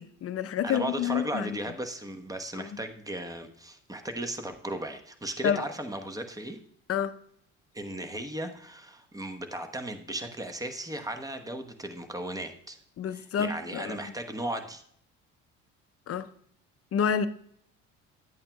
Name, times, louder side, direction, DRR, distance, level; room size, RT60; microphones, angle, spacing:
voice 1, 0.0-1.6 2.6-2.7 5.4-5.6 6.9-7.2 13.0-14.1 16.1-16.3 16.9-17.3, left 8 dB, 40° left, 0.6 m, -29 dB
voice 2, 0.6-6.6 7.7-12.8 13.1-14.8, right 1 dB, 10° right, 1.0 m, -36 dB
11.0 x 8.5 x 2.3 m
hypercardioid pair, 60°, 37 cm